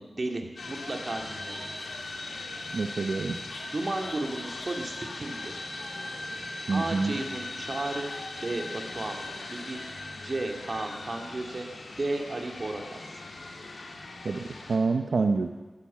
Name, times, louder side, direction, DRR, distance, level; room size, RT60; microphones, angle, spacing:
voice 1, 0.2-1.6 3.7-5.6 6.7-8.1 8.4-9.9 10.2-11.7 12.0-13.0, right 2 dB, 45° right, 3 dB, 2.1 m, -34 dB
sound 1, 0.6-14.8, left 2 dB, 80° left, 2.3 m, -39 dB
voice 2, 2.7-3.4 6.7-7.1 14.2-15.5, right 4 dB, 75° right, 6 dB, 0.7 m, -27 dB
14.0 x 13.5 x 7.3 m, 1.3 s
wide cardioid pair, 80°, 0 cm